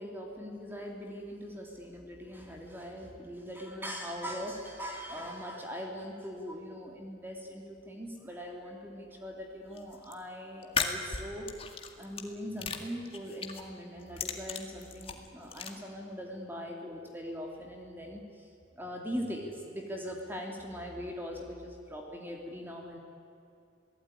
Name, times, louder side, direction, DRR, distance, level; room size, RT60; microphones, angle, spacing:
voice 1, 0.0-11.5 12.0-23.0, equal, 10° right, 1 dB, 2.7 m, -41 dB
sound 1, 9.8-10.1 10.6-12.2 12.6-13.6 14.0-15.7, left 5 dB, 30° left, 2.0 m, -36 dB
28.5 x 18.0 x 9.9 m, 2.7 s
head